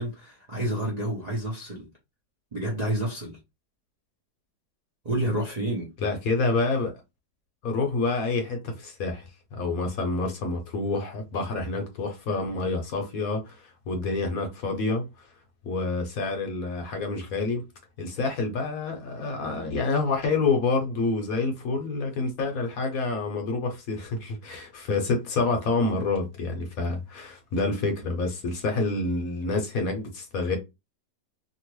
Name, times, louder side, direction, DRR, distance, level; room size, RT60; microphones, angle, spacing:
voice 1, 0.0-1.9 2.5-3.4 5.0-5.9, right 1 dB, 40° right, 0.6 m, -29 dB
voice 2, 6.0-6.9 7.6-9.2 9.5-15.1 15.6-17.6 18.0-30.6, left 3 dB, 60° left, 1.1 m, -28 dB
2.9 x 2.5 x 3.0 m
omnidirectional pair, 1.9 m